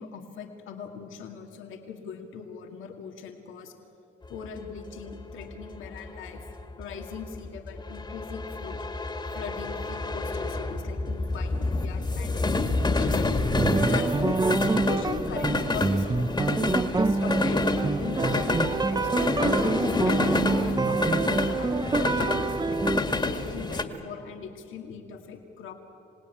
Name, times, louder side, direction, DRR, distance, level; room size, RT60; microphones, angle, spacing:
voice 1, 0.0-3.7 4.3-6.4 6.8-8.8 9.3-12.3 12.8-13.3 13.8-14.4 14.8-16.3 16.9-19.6 20.0-22.8 23.2-25.7, left 6 dB, 85° left, 4 dB, 2.0 m, -40 dB
sound 1, 4.3-23.8, left 2 dB, 20° left, 1.9 m, -28 dB
sound 2, 13.6-23.0, right 3 dB, 20° right, 0.7 m, -26 dB
26.5 x 18.0 x 9.1 m, 3.0 s
cardioid pair, 90°, 20 cm